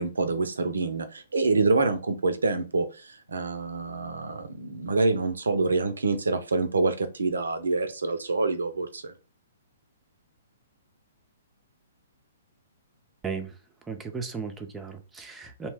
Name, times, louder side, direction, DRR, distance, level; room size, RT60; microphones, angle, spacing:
voice 1, 0.0-9.1, right 3 dB, 75° right, 10 dB, 0.5 m, -26 dB
voice 2, 13.9-15.7, right 5 dB, 10° right, 5 dB, 0.5 m, -35 dB
2.7 x 2.1 x 3.3 m, 0.31 s
figure-of-eight pair, 120°, 0 cm